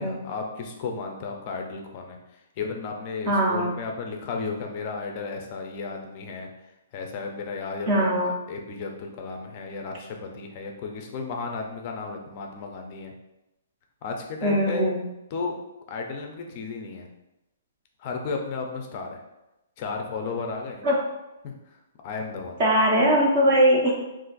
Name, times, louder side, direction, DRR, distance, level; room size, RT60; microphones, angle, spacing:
voice 1, 0.0-2.2 2.6-6.5 6.9-8.1 8.5-13.1 14.0-14.9 15.3-15.5 15.9-17.1 18.0-19.2 19.8-20.8 21.4-21.8 22.0-22.6, left 4 dB, 25° left, 2 dB, 0.4 m, -34 dB
voice 2, 3.3-3.7 7.9-8.3 14.4-15.0 20.8-21.0 22.6-23.9, equal, 30° right, -2 dB, 0.5 m, -20 dB
2.4 x 2.4 x 3.8 m, 0.93 s
hypercardioid pair, 175°, 0 cm